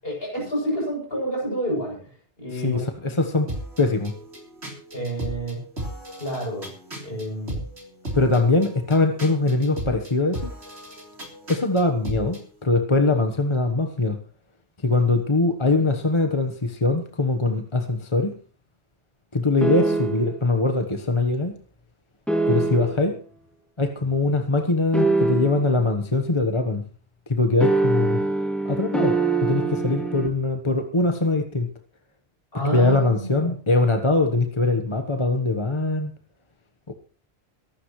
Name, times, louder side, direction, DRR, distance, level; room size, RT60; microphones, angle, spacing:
voice 1, 0.0-2.1 2.4-2.8 4.9-5.6 6.2-6.7 7.0-7.6 32.5-33.5, right 1 dB, 65° left, 8.4 m, -28 dB
voice 2, 2.5-3.5 3.8-4.1 8.1-10.5 11.5-14.2 14.8-18.3 19.3-21.6 22.5-23.2 23.8-26.8 27.3-28.2 28.6-31.7 32.7-36.1 36.9-37.0, left 2 dB, 30° left, 1.2 m, -22 dB
sound 1, 3.5-12.4, right 1 dB, 85° right, 4.0 m, -36 dB
sound 2, 19.6-20.4 22.3-23.1 24.9-25.8 27.6-30.3, right 3 dB, ahead, 2.6 m, -23 dB
23.5 x 12.5 x 3.2 m
omnidirectional pair, 1.1 m